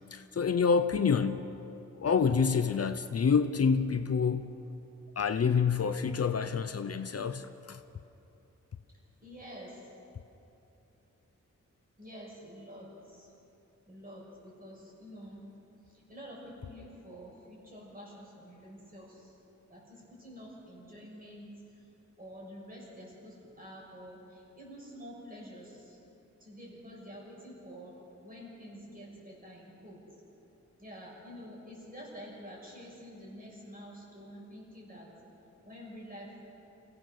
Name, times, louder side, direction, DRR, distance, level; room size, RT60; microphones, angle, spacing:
voice 1, 0.0-1.4 1.9-4.5 5.2-7.8, left 6 dB, 55° left, 10 dB, 0.7 m, -27 dB
voice 2, 9.2-9.9 12.0-13.3 13.9-15.4 15.9-19.3 19.7-21.9 22.2-26.0 26.4-30.0 30.8-35.1 35.6-36.5, equal, 30° right, -3 dB, 6.9 m, -48 dB
28.5 x 16.5 x 6.7 m, 2.9 s
wide cardioid pair, 155°, 30 cm